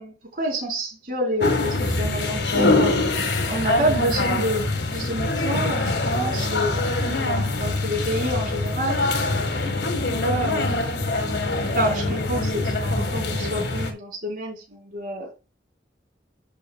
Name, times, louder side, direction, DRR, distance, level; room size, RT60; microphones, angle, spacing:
voice 1, 0.0-3.0 3.4-9.7 10.2-10.9 11.7-15.3, equal, 50° right, 4.4 m, -28 dB
sound 1, 1.4-13.9, left 2 dB, 75° left, 1.8 m, -24 dB
10.5 x 6.5 x 2.4 m
head